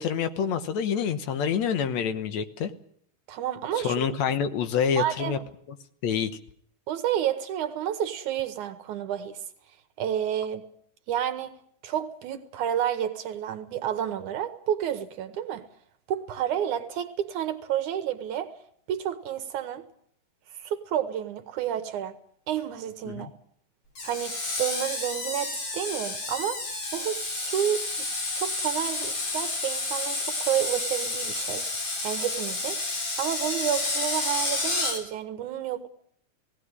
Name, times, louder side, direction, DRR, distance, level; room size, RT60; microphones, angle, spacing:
voice 1, 0.0-2.7 3.8-5.4 6.0-6.3 23.1-23.3, left 7 dB, 65° left, 2.2 m, -27 dB
voice 2, 3.3-4.0 5.0-5.4 6.9-9.4 10.0-10.6 11.1-11.5 11.8-15.6 16.1-18.5 18.9-19.8 20.6-22.2 22.5-23.3 24.0-26.6 26.9-27.8 28.4-31.6 32.0-32.8 33.2-35.9, right 10 dB, 75° right, 2.4 m, -30 dB
Screech, 23.9-35.0, left 2 dB, 45° left, 4.5 m, -30 dB
17.5 x 17.5 x 9.7 m
omnidirectional pair, 3.6 m